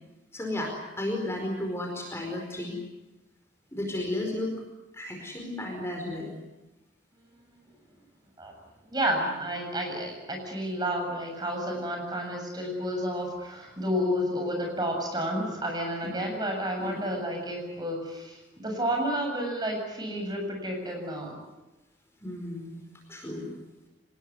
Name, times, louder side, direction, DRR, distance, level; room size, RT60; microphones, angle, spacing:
voice 1, 0.3-2.8 3.7-4.5 4.9-6.4 16.0-16.2 16.8-17.1 22.2-22.8 23.1-23.5, left 1 dB, 15° left, 1 dB, 4.8 m, -33 dB
voice 2, 8.9-21.4, equal, 25° right, 2 dB, 7.4 m, -31 dB
25.5 x 20.0 x 9.6 m, 1.1 s
head